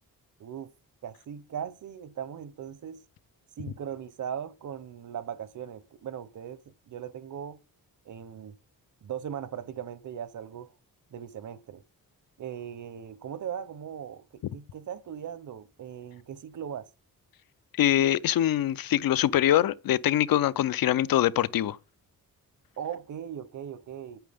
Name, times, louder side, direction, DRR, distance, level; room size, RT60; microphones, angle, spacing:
voice 1, 0.4-0.7 1.0-3.0 3.6-6.6 6.9-7.6 8.1-8.6 9.0-10.7 11.1-11.8 12.4-16.9 22.8-24.2, right 9 dB, 60° right, 0.9 m, -39 dB
voice 2, 17.8-21.8, left 12 dB, 80° left, 0.6 m, -24 dB
9.2 x 9.0 x 3.5 m
wide cardioid pair, 165°, 34 cm